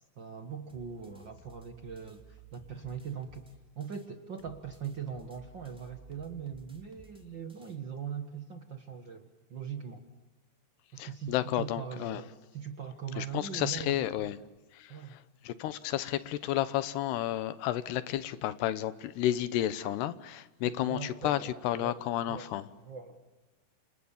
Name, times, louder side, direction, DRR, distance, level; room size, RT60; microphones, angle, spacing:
voice 1, 0.2-3.5 3.7-10.0 10.9-14.3 14.9-15.1 20.6-22.0 22.3-22.5 22.8-23.2, right 7 dB, 65° right, 1.1 m, -41 dB
sound 1, 0.7-4.1 4.4-7.8, right 3 dB, ahead, 2.1 m, -56 dB
voice 2, 11.0-12.2 13.2-14.4 14.7-22.6, left 13 dB, 80° left, 3.1 m, -32 dB
29.0 x 27.5 x 7.3 m
omnidirectional pair, 4.7 m